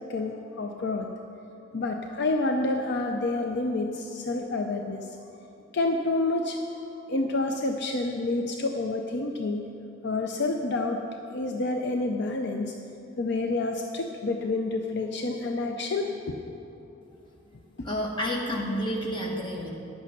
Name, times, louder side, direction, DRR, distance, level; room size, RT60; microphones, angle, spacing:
voice 1, 0.1-5.1 5.7-9.7 10.0-11.1 11.3-12.7 13.2-16.6 17.8-17.9, left 2 dB, 60° left, 4 dB, 0.5 m, -29 dB
voice 2, 17.8-19.7, equal, 25° left, -1 dB, 1.6 m, -30 dB
10.5 x 8.4 x 5.9 m, 2.7 s
head